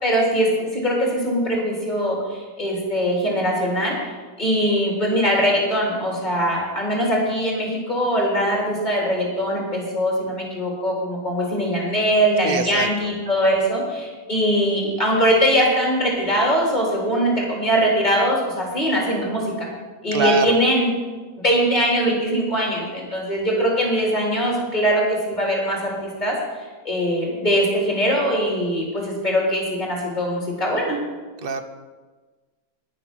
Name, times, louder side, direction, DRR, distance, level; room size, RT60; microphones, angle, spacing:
voice 1, 0.0-19.7 20.0-20.9 21.4-26.4 26.8-31.0, equal, 25° left, -3 dB, 3.4 m, -21 dB
voice 2, 12.4-12.9 20.1-20.6 31.4-31.6, right 4 dB, 45° right, 9 dB, 0.8 m, -23 dB
10.0 x 9.9 x 6.1 m, 1.3 s
omnidirectional pair, 1.8 m